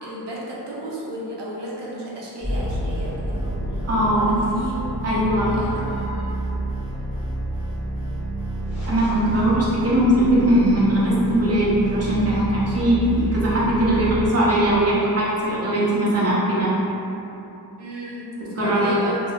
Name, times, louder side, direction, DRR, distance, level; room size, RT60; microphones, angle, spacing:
voice 1, 0.0-3.6 4.0-4.8 5.6-5.8 17.8-18.3 18.6-19.2, right 1 dB, 85° right, -6 dB, 0.7 m, -34 dB
sound 1, 2.4-14.3, right 1 dB, ahead, 0.8 m, -29 dB
voice 2, 3.8-4.4 5.0-6.2 8.9-16.7 18.6-18.9, right 1 dB, 35° right, -7 dB, 0.7 m, -20 dB
2.6 x 2.2 x 3.5 m, 3.0 s
wide cardioid pair, 155°, 40 cm